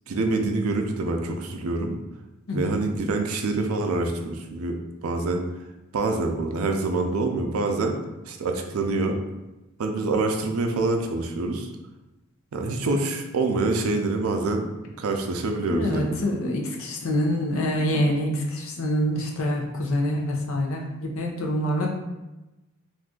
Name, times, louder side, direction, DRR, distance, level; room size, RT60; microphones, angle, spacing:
voice 1, 0.1-2.0 2.5-5.4 5.9-8.0 8.3-9.2 9.8-11.7 12.5-14.7 15.0-16.3, right 3 dB, 85° right, 4 dB, 0.4 m, -26 dB
voice 2, 15.7-21.9, equal, 75° left, 0 dB, 0.6 m, -26 dB
2.6 x 2.4 x 3.6 m, 1.0 s
head